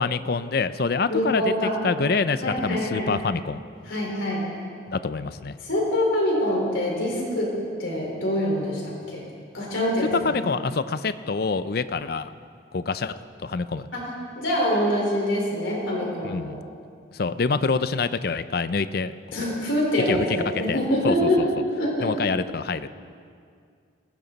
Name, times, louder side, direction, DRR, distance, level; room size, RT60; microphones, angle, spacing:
voice 1, 0.0-1.5 1.8-3.6 4.9-5.6 10.1-12.3 12.7-13.9 16.2-16.6 17.1-19.1 19.4-19.6 20.1-20.2 20.5-20.8 21.0-21.5 22.0-22.9, left 4 dB, 50° left, 13 dB, 0.5 m, -26 dB
voice 2, 1.1-1.7 2.4-3.1 3.9-4.5 5.6-7.5 7.8-9.2 9.5-10.1 13.9-16.6 19.3-21.4 21.8-22.1, left 1 dB, 90° left, -2 dB, 4.3 m, -25 dB
20.0 x 15.5 x 4.0 m, 2.2 s
head